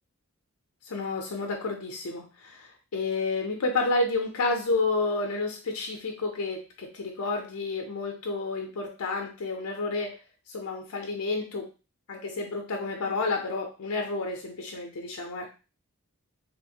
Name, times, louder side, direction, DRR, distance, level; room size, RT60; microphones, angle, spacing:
voice 1, 0.9-10.2 10.5-11.7 12.1-15.5, left 3 dB, 85° left, 2 dB, 0.5 m, -30 dB
2.6 x 2.4 x 2.8 m, 0.32 s
head